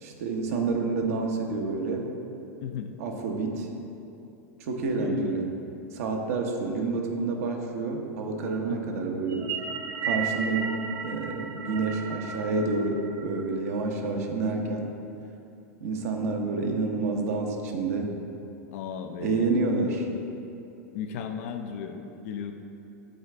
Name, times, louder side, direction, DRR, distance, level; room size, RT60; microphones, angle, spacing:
voice 1, 0.0-2.1 3.0-3.7 4.6-5.5 5.9-9.5 10.0-10.7 11.0-14.9 15.8-18.1 19.2-20.1, right 3 dB, 70° right, 2 dB, 0.9 m, -28 dB
voice 2, 2.6-3.0 5.0-5.4 8.7-9.0 18.7-19.6 20.0-20.1 20.9-22.5, left 7 dB, 65° left, 6 dB, 0.5 m, -35 dB
sound 1, 9.3-13.8, right 6 dB, 35° right, 0.6 m, -34 dB
8.7 x 4.0 x 3.3 m, 2.8 s
hypercardioid pair, 115°, 9 cm